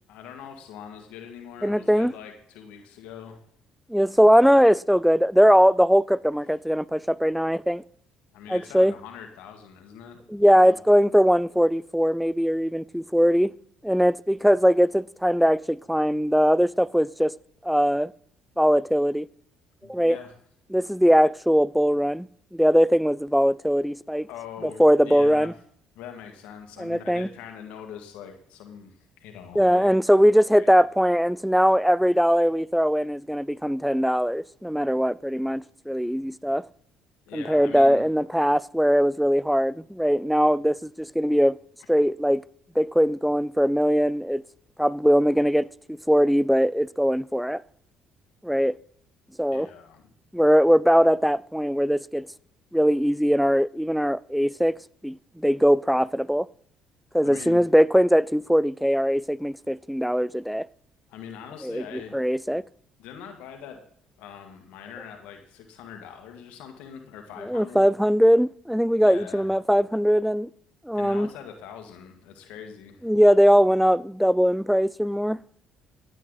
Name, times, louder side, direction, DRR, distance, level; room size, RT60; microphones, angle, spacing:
voice 1, 0.1-3.4 8.3-10.2 10.6-10.8 19.8-20.3 24.3-25.5 26.0-30.2 30.5-30.7 33.0-33.1 37.3-38.0 49.5-50.1 57.2-57.6 61.1-62.2 63.0-63.8 64.2-67.9 69.0-69.5 70.9-73.1, left 8 dB, 75° left, 2.0 m, -42 dB
voice 2, 1.6-2.1 3.9-7.8 8.5-8.9 10.3-13.5 13.8-17.4 17.6-18.1 18.6-19.3 19.9-20.2 20.7-24.3 24.6-25.5 26.8-27.3 29.6-36.7 37.3-41.6 41.9-42.4 42.8-44.4 44.8-47.6 48.4-48.7 49.4-49.7 50.3-52.3 52.7-54.8 55.0-56.5 57.1-60.7 61.6-61.8 62.1-62.6 67.4-70.5 70.9-71.3 73.0-75.4, equal, ahead, 0.4 m, -21 dB
16.0 x 9.1 x 4.0 m
hypercardioid pair, 60°, 2 cm